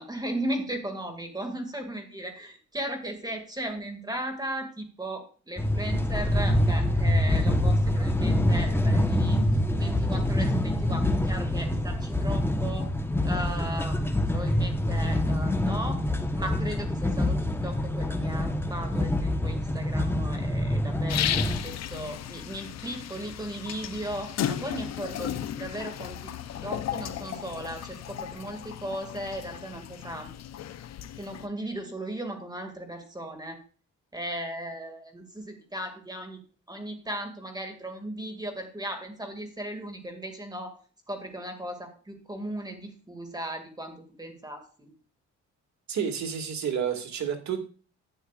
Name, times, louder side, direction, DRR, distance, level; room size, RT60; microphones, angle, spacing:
voice 1, 0.0-9.4 9.8-12.9 13.2-16.0 16.3-17.4 17.6-26.3 26.6-30.3 31.1-33.6 34.1-36.4 36.7-40.8 41.1-44.9, right 1 dB, 15° right, 4 dB, 2.2 m, -36 dB
sound 1, 5.6-21.6, left 1 dB, 10° left, 1.1 m, -26 dB
sound 2, 21.1-31.5, left 10 dB, 60° left, 0.7 m, -35 dB
voice 2, 45.9-47.6, right 7 dB, 65° right, 4 dB, 2.2 m, -30 dB
11.5 x 9.2 x 2.5 m, 0.39 s
cardioid pair, 90°, 30 cm